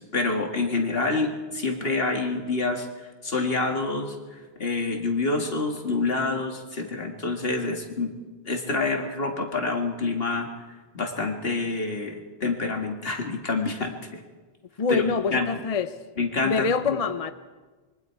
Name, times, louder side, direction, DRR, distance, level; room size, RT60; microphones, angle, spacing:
voice 1, 0.0-2.9 3.2-4.2 4.6-8.1 8.5-10.5 10.9-14.2 14.9-15.0 15.3-15.5 16.2-17.0, left 3 dB, 70° left, 2.3 m, -27 dB
voice 2, 14.8-15.9 16.4-17.3, left 5 dB, 40° left, 0.7 m, -25 dB
25.5 x 23.0 x 4.7 m
omnidirectional pair, 1.1 m